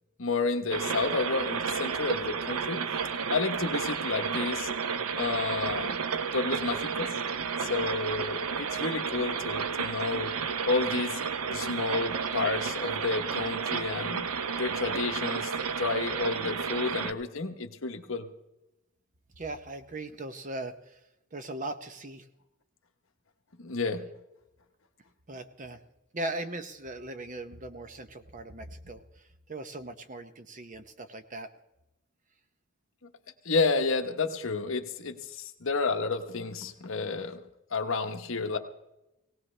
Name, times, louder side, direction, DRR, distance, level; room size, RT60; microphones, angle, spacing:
voice 1, 0.2-2.8 3.3-4.7 5.1-6.0 6.3-7.1 7.6-10.3 10.6-11.2 11.5-14.3 14.6-15.5 15.8-18.3 23.6-24.0 33.4-37.4 37.7-38.6, left 3 dB, 65° left, 6 dB, 1.0 m, -30 dB
sound 1, 0.7-17.1, right 6 dB, 90° right, 0.7 m, -32 dB
voice 2, 19.4-21.0 21.3-22.3 25.3-25.8 26.1-29.0 29.5-31.5, right 2 dB, 35° right, 9 dB, 0.7 m, -39 dB
19.0 x 17.5 x 3.3 m, 0.93 s
head